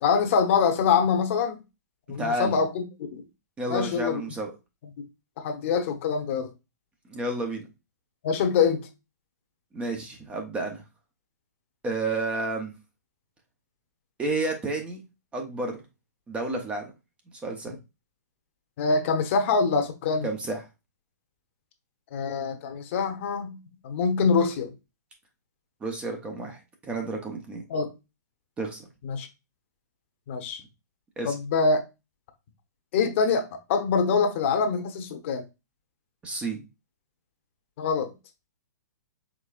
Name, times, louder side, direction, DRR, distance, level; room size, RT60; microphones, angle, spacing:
voice 1, 0.0-1.6 2.1-2.8 3.1-3.2 3.7-4.2 5.0-5.1 5.4-6.5 8.2-8.9 18.8-20.3 22.1-23.6 23.8-24.7 27.7-27.9 29.0-29.3 30.3-30.6 31.2-31.8 32.9-35.4 37.8-38.1, left 5 dB, 45° left, 1.0 m, -24 dB
voice 2, 2.1-2.6 3.6-4.5 7.1-7.7 9.7-10.8 11.8-12.7 14.2-15.0 15.3-15.8 16.3-16.9 17.4-17.7 20.2-20.6 25.8-27.6 28.6-28.9 31.2-31.3 36.2-36.6, right 2 dB, 10° right, 0.8 m, -31 dB
5.1 x 3.6 x 2.4 m
hypercardioid pair, 150°, 10 cm